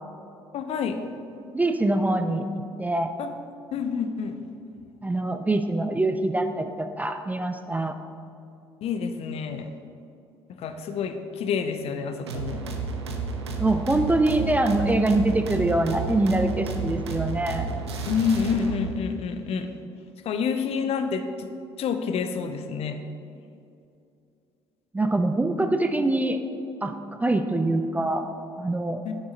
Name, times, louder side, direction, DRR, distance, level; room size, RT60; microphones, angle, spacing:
voice 1, 0.5-1.0 3.2-3.3 3.7-4.4 8.8-9.7 10.6-12.7 18.1-19.7 20.2-21.5 21.8-23.0 29.0-29.2, left 6 dB, 45° left, 8 dB, 0.5 m, -28 dB
voice 2, 1.5-3.1 5.0-8.0 13.6-17.7 24.9-26.4 26.8-28.3 28.6-29.0, right 2 dB, 10° right, 7 dB, 0.4 m, -24 dB
sound 1, 12.3-19.0, right 4 dB, 80° right, 0.5 m, -32 dB
6.2 x 6.2 x 3.9 m, 2.6 s
figure-of-eight pair, 50°, 14 cm